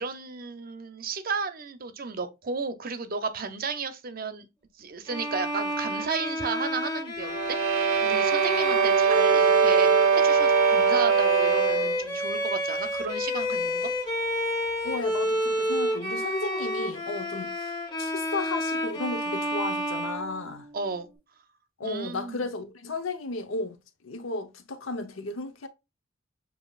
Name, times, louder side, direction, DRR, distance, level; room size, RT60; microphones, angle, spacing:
voice 1, 0.0-4.5 4.8-7.6 8.0-13.9 20.7-21.1 21.8-22.5, right 4 dB, 45° right, 0.6 m, -33 dB
Bowed string instrument, 5.1-20.9, left 1 dB, 20° left, 1.3 m, -30 dB
sound 1, 7.2-12.0, right 6 dB, 85° right, 0.7 m, -22 dB
voice 2, 14.8-20.7 21.8-23.8 24.0-25.7, left 3 dB, 80° left, 0.8 m, -34 dB
7.0 x 2.8 x 2.4 m
head